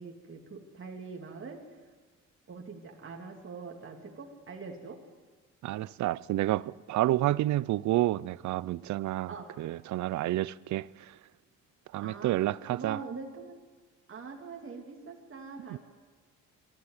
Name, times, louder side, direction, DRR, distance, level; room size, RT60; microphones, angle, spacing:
voice 1, 0.0-1.6 2.5-5.0 9.3-9.5 12.0-13.6 14.1-15.8, right 4 dB, 45° right, 2.8 m, -43 dB
voice 2, 5.6-11.1 11.9-13.0 15.7-15.8, right 15 dB, 70° right, 0.6 m, -30 dB
20.5 x 13.5 x 9.7 m
cardioid pair, 90°, 30 cm